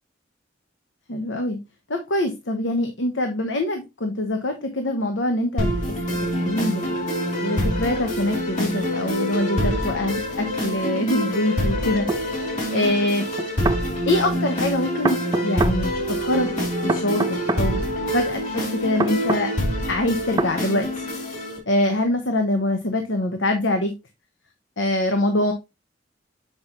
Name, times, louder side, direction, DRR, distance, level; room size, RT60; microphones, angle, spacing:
voice 1, 1.1-1.6 1.9-5.7 6.1-7.0 7.4-13.3 14.1-17.8 18.1-19.5 19.9-21.1 21.7-23.9 24.8-25.5, left 1 dB, 70° left, 5 dB, 1.0 m, -24 dB
sound 1, 5.6-21.6, equal, 40° left, 3.0 m, -26 dB
sound 2, 12.1-12.2 13.4-13.8 15.0-15.8 16.9-17.7 19.0-19.5 20.4-20.6, right 2 dB, 20° right, 0.4 m, -24 dB
7.8 x 5.3 x 2.9 m, 0.23 s
head